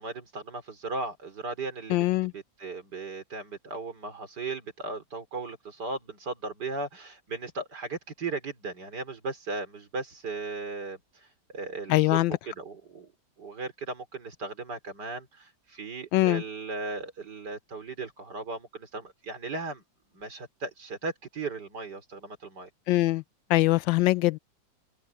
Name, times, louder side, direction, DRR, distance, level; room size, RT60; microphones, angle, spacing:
voice 1, 0.0-11.3 11.5-13.1 13.4-19.8 20.1-22.7, right 3 dB, 60° right, 4.2 m, -37 dB
voice 2, 1.9-2.3 11.9-12.3 16.1-16.4 22.9-23.2 23.5-24.4, left 18 dB, 85° left, 1.3 m, -22 dB
omnidirectional pair, 2.0 m